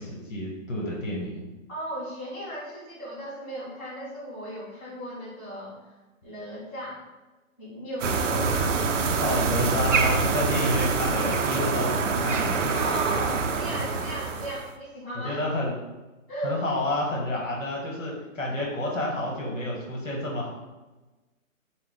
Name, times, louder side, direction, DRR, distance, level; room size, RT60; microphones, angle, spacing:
voice 1, 0.0-1.4 9.2-13.4 13.7-14.0 14.3-14.4 15.1-15.7 16.4-20.5, left 1 dB, 65° left, -2 dB, 1.2 m, -29 dB
voice 2, 1.7-5.9 6.2-7.0 7.6-9.5 10.5-10.7 12.7-15.4 16.3-16.6, right 1 dB, 15° left, -14 dB, 1.3 m, -36 dB
sound 1, 8.0-14.7, right 4 dB, 65° right, 0.5 m, -26 dB
4.3 x 2.2 x 3.6 m, 1.2 s
hypercardioid pair, 175°, 41 cm